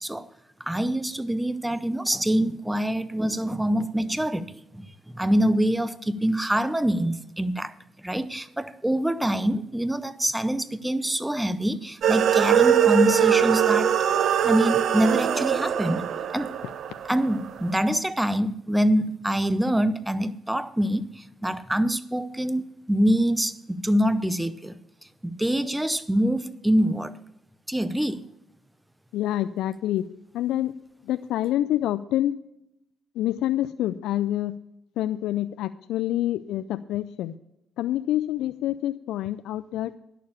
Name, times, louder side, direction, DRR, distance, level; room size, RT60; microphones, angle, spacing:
voice 1, 0.7-7.7 8.0-13.9 14.4-16.5 17.0-24.8 25.2-27.2 27.7-28.2, equal, 10° right, 0.6 m, -25 dB
sound 1, 12.0-17.5, right 9 dB, 65° right, 0.7 m, -22 dB
voice 2, 29.1-30.1 30.3-30.7 31.1-32.3 33.2-34.5 35.0-37.3 37.8-39.9, left 13 dB, 80° left, 0.3 m, -27 dB
11.0 x 6.7 x 7.0 m
supercardioid pair, 75°, 0 cm